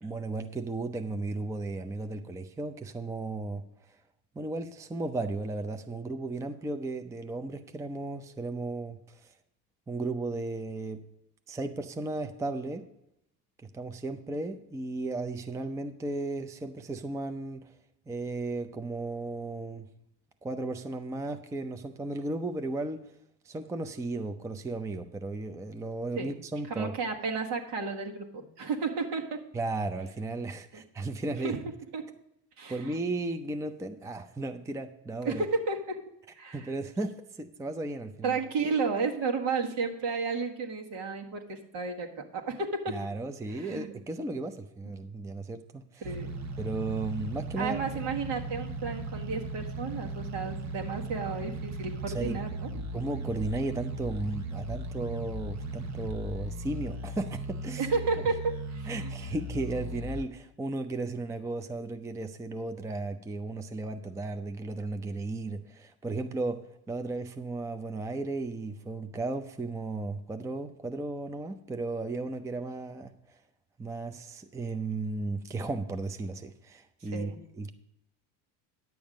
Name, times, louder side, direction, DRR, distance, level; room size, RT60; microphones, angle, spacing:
voice 1, 0.0-3.6 4.4-9.3 9.9-11.0 11.5-12.8 13.7-17.7 18.1-19.9 20.4-23.0 23.5-26.9 29.5-31.6 32.7-35.4 36.5-38.4 42.9-46.0 46.6-47.8 52.1-52.4 52.9-57.9 58.9-66.6 66.9-73.1 73.8-77.7, right 2 dB, 5° right, 7 dB, 0.5 m, -35 dB
voice 2, 26.7-29.4 30.7-30.8 31.4-31.6 31.9-32.1 32.6-33.0 35.2-36.0 36.3-36.7 38.2-43.0 43.5-43.9 44.8-44.9 46.0-46.3 47.6-52.9 57.8-59.3 77.0-77.4, right 4 dB, 65° right, 2 dB, 1.7 m, -32 dB
sound 1, 46.0-60.2, right 2 dB, 35° right, 0.9 m, -37 dB
10.5 x 7.1 x 5.1 m, 0.82 s
supercardioid pair, 85°, 46 cm